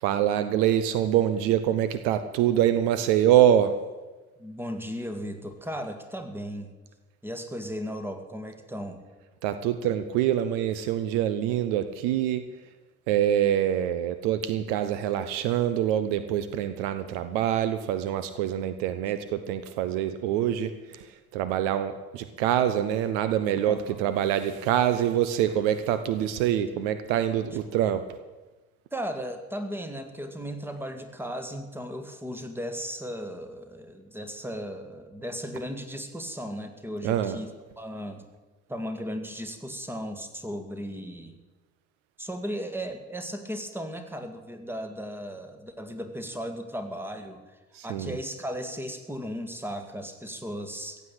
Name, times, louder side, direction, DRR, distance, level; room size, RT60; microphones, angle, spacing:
voice 1, 0.0-3.8 9.4-12.4 13.1-21.0 21.3-28.0 37.0-37.4 47.7-48.2, right 11 dB, 55° right, 11 dB, 0.9 m, -25 dB
voice 2, 4.4-6.7 7.2-9.0 23.7-24.0 28.9-38.3 38.7-41.4 42.2-47.4 47.8-51.0, equal, 5° right, 7 dB, 1.9 m, -36 dB
15.5 x 8.2 x 8.8 m, 1.2 s
figure-of-eight pair, 60°, 44 cm